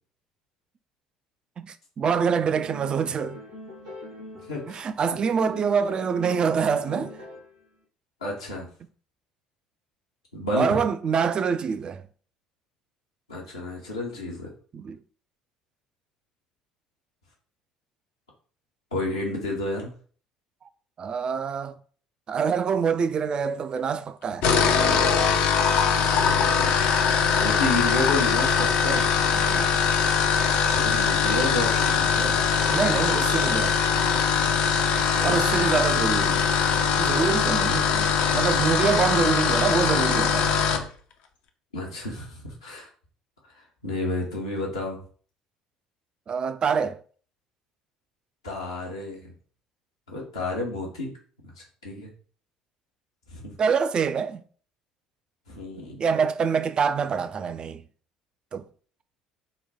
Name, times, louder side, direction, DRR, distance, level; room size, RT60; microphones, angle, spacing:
voice 1, 1.6-3.4 4.7-7.1 10.5-12.0 14.7-15.0 21.0-21.7 22.3-24.5 29.3-29.8 32.7-33.8 35.2-36.4 37.0-38.1 38.3-40.5 46.3-47.0 53.6-54.4 56.0-57.8 58.5-58.7, right 6 dB, 35° right, 0.4 m, -25 dB
sound 1, 2.5-4.9 5.2-7.6, left 1 dB, 75° right, 1.4 m, -42 dB
voice 2, 4.3-4.8 8.2-8.7 10.3-10.8 13.3-14.5 18.9-19.9 27.3-29.1 30.7-32.4 35.1-35.4 41.7-42.9 43.8-45.0 48.4-49.3 50.1-51.1 51.8-52.1 53.3-53.5 55.5-56.0, left 2 dB, 80° left, 0.9 m, -30 dB
sound 2, 24.3-40.9, left 6 dB, 55° left, 0.5 m, -22 dB
4.0 x 2.2 x 4.0 m
figure-of-eight pair, 55°, 3 cm